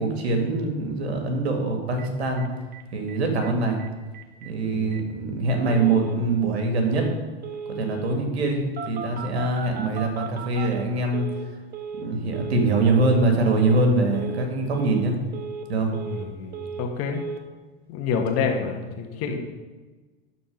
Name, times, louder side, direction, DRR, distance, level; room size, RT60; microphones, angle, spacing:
voice 1, 0.0-2.5 2.9-3.8 4.4-7.1 7.8-8.6 8.9-11.3 11.9-15.1 15.7-15.9 19.3-19.4, right 2 dB, 75° right, 3 dB, 2.0 m, -23 dB
Telephone, 2.0-2.1 2.4-2.5 2.7-2.8 3.1-3.5 3.8-3.9 4.1-4.5 4.9-5.0 5.5-6.2 6.9-7.2 7.4-8.2 8.8-11.5 11.7-12.1 12.3-12.7 12.9-13.3 13.5-13.9 14.1-14.5 14.7-15.1 15.3-16.3 16.5-16.9 17.1-17.4, right 6 dB, 30° right, 1.0 m, -36 dB
voice 2, 4.6-4.9 16.1-17.2 17.9-19.4, left 5 dB, 45° left, 3 dB, 1.6 m, -28 dB
12.0 x 4.2 x 5.3 m, 1.3 s
hypercardioid pair, 95°, 32 cm